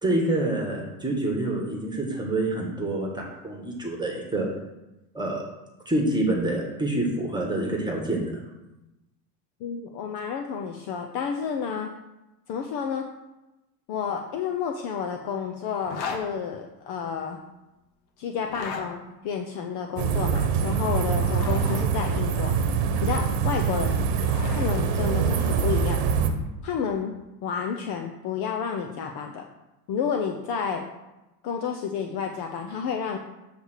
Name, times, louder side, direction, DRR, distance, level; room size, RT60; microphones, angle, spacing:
voice 1, 0.0-4.5 5.1-5.4 5.8-8.4, right 1 dB, 10° right, -1 dB, 1.6 m, -27 dB
voice 2, 9.6-11.9 12.5-13.1 13.9-17.4 18.2-22.7 23.0-24.1 24.5-26.0 26.6-27.1 27.4-29.4 29.9-30.8 31.4-33.2, left 6 dB, 55° left, 3 dB, 0.8 m, -30 dB
Zipper (clothing), 15.8-16.2 18.4-18.8 21.0-21.8 23.7-24.8, left 4 dB, 90° left, 1.2 m, -35 dB
sound 1, 20.0-26.3, right 6 dB, 55° right, 1.1 m, -24 dB
8.3 x 3.4 x 6.4 m, 1.0 s
supercardioid pair, 105°, 48 cm